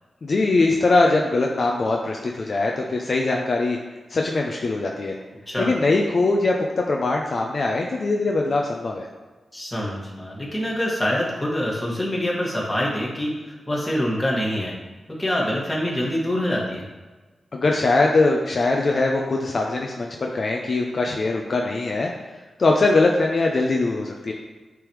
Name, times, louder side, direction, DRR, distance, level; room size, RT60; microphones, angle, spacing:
voice 1, 0.2-3.8 4.1-5.2 5.6-9.1 17.5-22.1 22.6-24.3, left 3 dB, 55° left, 1 dB, 0.6 m, -21 dB
voice 2, 9.5-14.7 15.1-16.8, left 1 dB, 20° left, -4 dB, 1.9 m, -25 dB
9.2 x 3.5 x 3.1 m, 1.3 s
cardioid pair, 70°, 0 cm